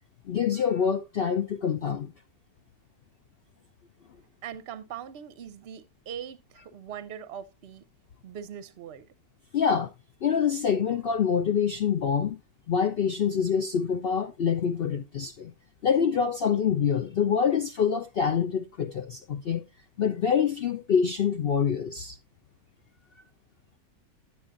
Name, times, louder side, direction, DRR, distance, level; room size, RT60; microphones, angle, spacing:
voice 1, 0.3-2.1 9.5-9.9 10.2-12.4 12.7-15.5 15.8-19.6 20.0-22.2, left 7 dB, 80° left, 0.5 m, -26 dB
voice 2, 4.4-7.9 8.2-9.1, right 9 dB, 50° right, 0.8 m, -41 dB
9.6 x 7.8 x 2.4 m
omnidirectional pair, 1.7 m